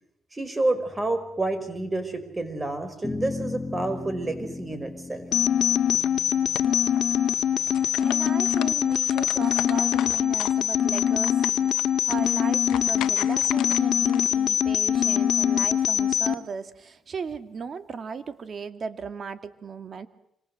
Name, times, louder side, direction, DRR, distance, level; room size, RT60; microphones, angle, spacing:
voice 1, 0.3-5.2, right 2 dB, 20° right, 10 dB, 5.3 m, -29 dB
sound 1, 3.0-9.6, left 3 dB, 20° left, 1.6 m, -38 dB
sound 2, 5.3-16.3, left 9 dB, 70° left, 2.1 m, -23 dB
sound 3, 5.8-6.1 6.5-7.3 7.6-10.6 10.9-14.2, left 13 dB, 85° left, 1.2 m, -37 dB
voice 2, 8.0-20.1, right 5 dB, 45° right, 10 dB, 2.4 m, -37 dB
27.5 x 25.0 x 7.8 m, 0.75 s
cardioid pair, 90°, 0 cm